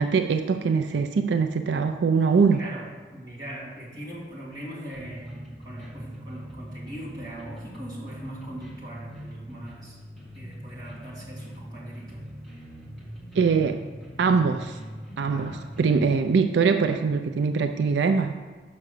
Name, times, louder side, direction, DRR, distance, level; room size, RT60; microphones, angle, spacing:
voice 1, 0.0-2.6 13.3-13.9 14.2-14.8 15.2-18.3, right 5 dB, 80° right, 7 dB, 0.4 m, -22 dB
voice 2, 2.5-10.0 10.3-12.3 15.3-15.7, right 1 dB, 20° right, -7 dB, 2.0 m, -40 dB
sound 1, 4.9-16.1, equal, ahead, 1.6 m, -42 dB
6.0 x 5.5 x 6.6 m, 1.3 s
head